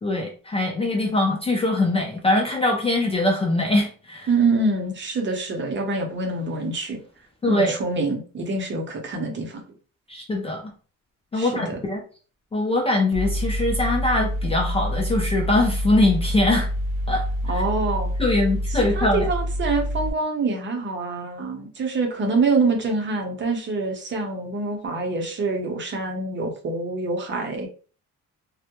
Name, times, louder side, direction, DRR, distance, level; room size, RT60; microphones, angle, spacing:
voice 1, 0.0-4.3 7.4-7.7 10.1-10.7 11.3-12.0 12.5-16.7 17.1-17.2 18.2-19.3, left 2 dB, 20° left, 0 dB, 0.4 m, -22 dB
voice 2, 4.3-7.0 7.5-9.6 11.3-11.8 17.5-18.1 18.7-27.7, right 3 dB, 35° right, 2 dB, 0.7 m, -25 dB
Mechanical fan, 13.1-20.1, equal, 85° right, 0.6 m, -26 dB
2.2 x 2.0 x 2.9 m, 0.39 s
cardioid pair, 120°, 32 cm